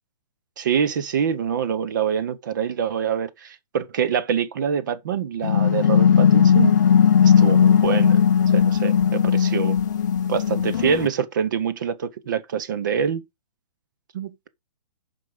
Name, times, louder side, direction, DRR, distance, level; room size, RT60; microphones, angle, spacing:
voice 1, 0.6-6.7 7.2-8.2 8.5-9.8 10.3-13.2 14.1-14.5, right 7 dB, 30° right, 0.9 m, -25 dB
sound 1, 5.4-11.1, left 8 dB, 30° left, 0.7 m, -17 dB
10.0 x 5.5 x 4.9 m
hypercardioid pair, 175°, 21 cm